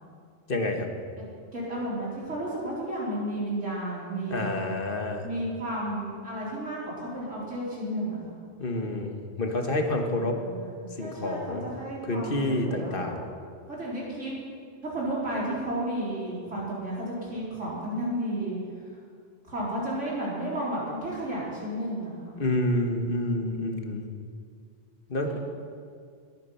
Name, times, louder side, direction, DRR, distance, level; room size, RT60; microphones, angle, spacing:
voice 1, 0.5-0.9 4.3-5.2 8.6-10.4 11.0-11.7 12.1-13.3 22.4-24.1 25.1-25.4, left 1 dB, 45° left, 3 dB, 1.6 m, -28 dB
voice 2, 1.5-4.5 5.2-8.2 10.2-13.1 13.7-14.3 14.8-18.6 19.5-22.3 25.3-25.4, right 1 dB, 75° right, -6 dB, 4.6 m, -32 dB
20.5 x 9.1 x 5.7 m, 2.2 s
omnidirectional pair, 1.3 m